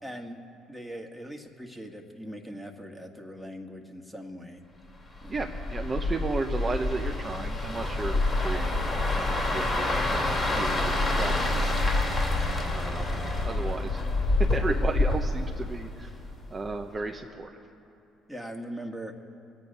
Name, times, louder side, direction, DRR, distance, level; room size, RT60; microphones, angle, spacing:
voice 1, 0.0-0.4 0.7-4.6 5.2-5.5 18.3-19.1, equal, ahead, 3 dB, 1.6 m, -40 dB
sound 1, 5.2-16.3 16.7-17.0, left 2 dB, 30° left, 3.0 m, -27 dB
voice 2, 5.3-8.9 9.1-11.3 11.7-11.9 12.7-14.0 14.4-16.1 16.5-17.5, right 3 dB, 30° right, 3 dB, 0.8 m, -34 dB
22.0 x 8.7 x 5.4 m, 2.6 s
hypercardioid pair, 65°, 0 cm